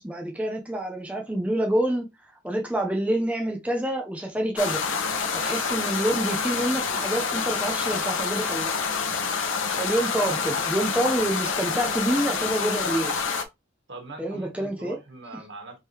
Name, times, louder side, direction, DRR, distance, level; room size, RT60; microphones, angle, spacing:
voice 1, 0.0-2.1 2.4-4.8 5.3-8.7 9.8-13.1 14.2-15.0, right 1 dB, 5° right, 0.6 m, -27 dB
sound 1, 4.6-13.4, left 5 dB, 75° left, 0.8 m, -27 dB
voice 2, 13.9-15.8, right 2 dB, 60° right, 1.6 m, -42 dB
4.9 x 3.7 x 2.9 m
head